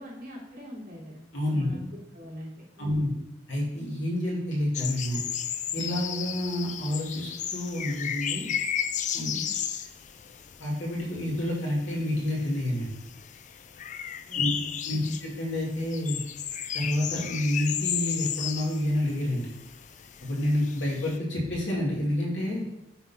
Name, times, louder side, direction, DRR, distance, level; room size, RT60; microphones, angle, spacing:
voice 1, 0.0-1.2 1.5-3.1 9.1-9.5 14.3-15.2, equal, 50° right, -6 dB, 3.0 m, -43 dB
voice 2, 1.3-1.7 2.8-3.1 3.5-5.2 5.7-8.5 9.1-9.4 10.6-13.0 14.3-14.5 14.8-16.2 16.7-19.5 20.2-22.6, left 1 dB, 90° left, -3 dB, 2.3 m, -29 dB
sound 1, 4.7-21.2, left 9 dB, 40° left, 0.4 m, -34 dB
7.0 x 4.2 x 5.6 m, 0.91 s
head